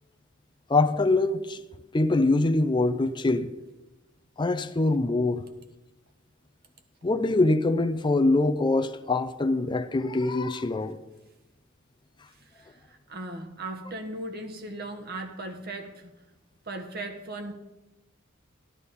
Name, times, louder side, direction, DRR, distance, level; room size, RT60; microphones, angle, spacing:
voice 1, 0.7-1.6 1.9-3.5 4.4-5.4 7.0-11.0, left 2 dB, 25° left, 0.5 m, -24 dB
voice 2, 12.5-16.1 16.7-17.5, right 2 dB, 50° right, 1.4 m, -37 dB
13.0 x 12.0 x 4.2 m
head